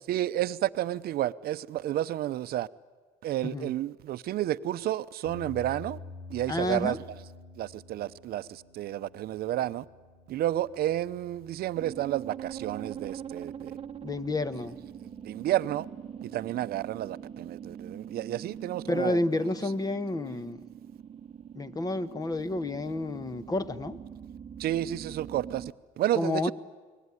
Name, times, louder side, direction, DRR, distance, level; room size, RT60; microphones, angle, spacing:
voice 1, 0.1-2.7 3.2-6.0 6.3-7.0 7.6-9.8 10.3-13.7 15.2-15.9 16.2-19.2 24.6-25.7 26.0-26.5, right 13 dB, 65° right, 0.7 m, -31 dB
sound 1, 5.2-17.8, left 3 dB, 80° left, 6.3 m, -50 dB
voice 2, 6.5-7.0 14.0-14.8 18.9-20.6 21.5-24.0 26.1-26.5, left 2 dB, 20° left, 1.1 m, -30 dB
sound 2, 11.8-25.7, right 8 dB, 35° right, 0.9 m, -43 dB
29.0 x 20.0 x 9.8 m
cardioid pair, 110°, 17 cm